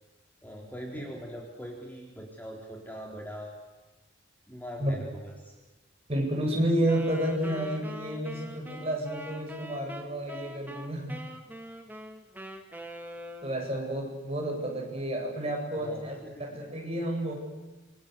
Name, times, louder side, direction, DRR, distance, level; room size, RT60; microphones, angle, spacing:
voice 1, 0.4-3.5 4.5-5.6 15.7-16.5, equal, 10° left, 0 dB, 3.4 m, -41 dB
voice 2, 6.1-11.2 13.4-17.4, right 1 dB, 30° right, 0 dB, 8.0 m, -30 dB
Wind instrument woodwind instrument, 6.8-13.8, right 1 dB, 10° right, 2.4 m, -43 dB
27.5 x 24.5 x 8.2 m, 1.2 s
head